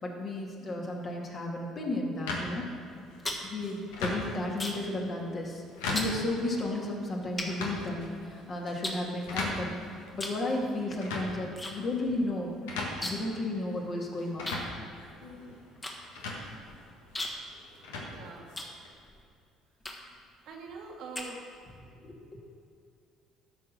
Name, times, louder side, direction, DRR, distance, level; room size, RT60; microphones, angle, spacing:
voice 1, 0.0-2.7 3.4-5.6 5.9-12.6 13.0-14.5 22.0-22.1, left 2 dB, 45° left, -1 dB, 2.1 m, -33 dB
sound 1, 2.3-18.9, left 2 dB, 80° left, 1.4 m, -40 dB
sound 2, 2.9-5.0 5.3-5.6 5.9-6.2 6.8-6.9 7.4-8.3 8.8-9.7 10.1-10.5 10.7-11.7 12.0-12.1 12.4-13.4 13.7-13.8 14.4-19.2 19.8-20.2 20.7-21.8, left 1 dB, 25° left, 1.6 m, -39 dB
voice 2, 18.0-18.5 20.4-21.4, right 4 dB, 65° right, 0 dB, 1.5 m, -44 dB
12.5 x 4.4 x 5.9 m, 2.5 s
hypercardioid pair, 60°, 0 cm